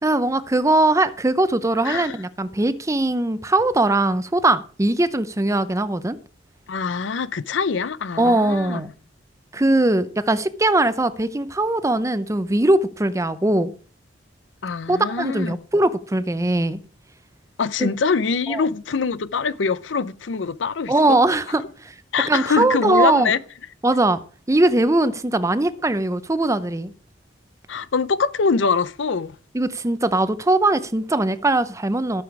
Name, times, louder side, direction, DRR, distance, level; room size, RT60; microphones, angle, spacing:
voice 1, 0.0-6.2 8.2-8.9 9.5-13.7 14.9-16.8 17.8-17.9 18.5-18.6 20.9-21.9 22.3-23.3 23.8-24.2 24.5-26.9 29.5-32.2, right 2 dB, 15° right, 0.6 m, -20 dB
voice 2, 1.8-2.2 6.7-8.8 14.6-15.6 17.6-21.2 22.1-23.4 27.7-29.4, left 5 dB, 75° left, 0.6 m, -24 dB
13.5 x 7.0 x 4.7 m
head